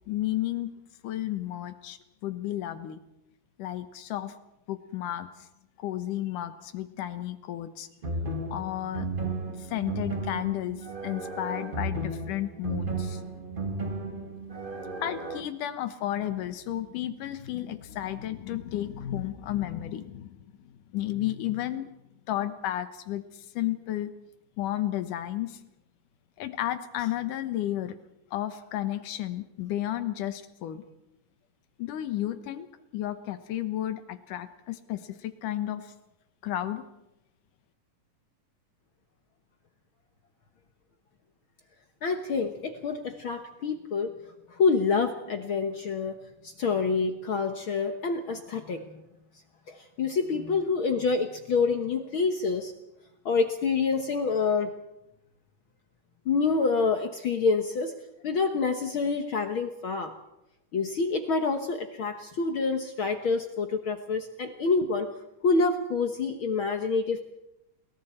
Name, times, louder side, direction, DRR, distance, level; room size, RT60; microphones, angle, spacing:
voice 1, 0.1-0.7 1.0-3.0 3.6-4.3 4.7-5.5 5.8-7.9 8.5-9.1 9.6-13.2 15.0-21.9 22.3-24.1 24.6-25.6 26.4-28.0 28.3-30.8 31.8-32.7 32.9-35.9 36.4-36.8, left 13 dB, 75° left, 11 dB, 2.7 m, -32 dB
sound 1, 8.0-15.4, right 2 dB, 35° right, 0.8 m, -34 dB
voice 2, 42.0-44.1 44.5-48.8 49.7-52.7 53.2-54.7 56.2-57.9 58.2-60.1 60.7-65.1 65.4-67.2, left 4 dB, 60° left, 6 dB, 1.4 m, -27 dB
30.0 x 22.0 x 4.4 m, 0.90 s
omnidirectional pair, 3.8 m